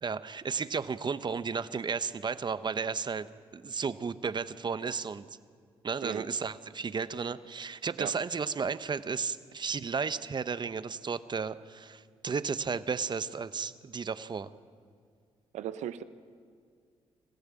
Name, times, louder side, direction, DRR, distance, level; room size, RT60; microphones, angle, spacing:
voice 1, 0.0-3.3 3.5-5.3 5.8-14.5, right 5 dB, 40° right, 14 dB, 1.0 m, -33 dB
voice 2, 15.5-16.0, right 11 dB, 80° right, 12 dB, 0.9 m, -37 dB
26.5 x 15.0 x 9.0 m, 2.1 s
supercardioid pair, 55°, 12 cm